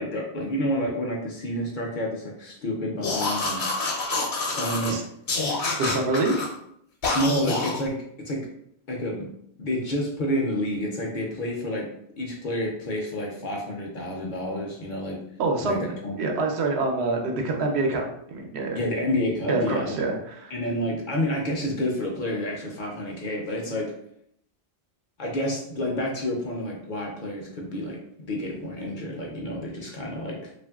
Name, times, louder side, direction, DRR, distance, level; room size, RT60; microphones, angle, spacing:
voice 1, 0.0-3.7 4.5-5.0 7.1-8.5 8.9-9.3 9.6-11.9 12.2-15.2 15.6-16.3 18.7-20.0 20.5-23.9 25.2-30.5, equal, 55° left, -1 dB, 0.6 m, -29 dB
sound 1, 3.0-4.9 5.3-6.5 7.0-7.8, left 3 dB, 75° left, 1.0 m, -27 dB
voice 2, 5.8-6.5 15.4-18.8 19.5-20.5, right 3 dB, 80° right, 2 dB, 0.8 m, -26 dB
2.9 x 2.5 x 2.3 m, 0.72 s
omnidirectional pair, 1.1 m